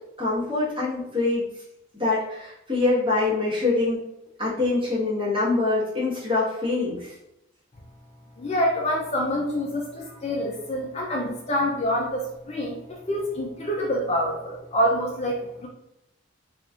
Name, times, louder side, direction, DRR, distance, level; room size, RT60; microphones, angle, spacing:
voice 1, 0.2-1.4 2.0-4.0 4.4-7.1, left 3 dB, 25° right, -9 dB, 1.3 m, -24 dB
voice 2, 8.4-15.7, equal, 30° left, -2 dB, 0.4 m, -26 dB
3.1 x 2.4 x 2.4 m, 0.84 s
head